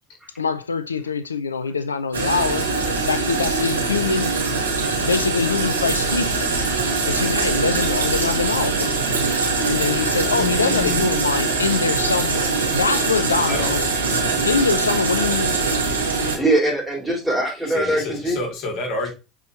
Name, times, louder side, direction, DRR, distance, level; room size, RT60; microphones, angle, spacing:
voice 1, 0.4-2.7 3.1-4.3 5.1-6.5 7.1-9.0 9.6-13.8 14.1-15.6, left 5 dB, 85° left, 0.3 m, -24 dB
sound 1, 2.1-16.4, right 4 dB, 85° right, 2.3 m, -22 dB
voice 2, 10.3-11.1 13.5-13.7 17.7-19.1, left 2 dB, 55° left, 2.7 m, -29 dB
voice 3, 16.4-18.4, right 1 dB, 5° right, 3.9 m, -21 dB
6.9 x 4.7 x 3.0 m
figure-of-eight pair, 70°, 0 cm